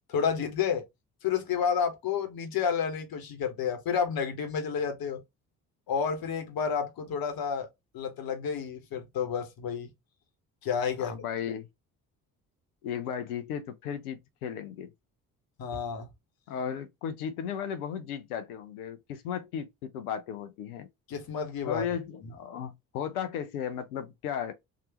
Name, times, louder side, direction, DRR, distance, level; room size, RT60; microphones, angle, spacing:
voice 1, 0.1-0.9 1.2-5.2 5.9-7.7 7.9-9.9 10.6-11.1 15.6-16.1 21.1-21.8 22.2-22.3, left 7 dB, 55° left, 1.4 m, -30 dB
voice 2, 11.0-11.7 12.8-14.9 16.5-20.9 21.6-24.5, left 8 dB, 80° left, 0.9 m, -35 dB
4.1 x 2.7 x 2.9 m
hypercardioid pair, 50°, 44 cm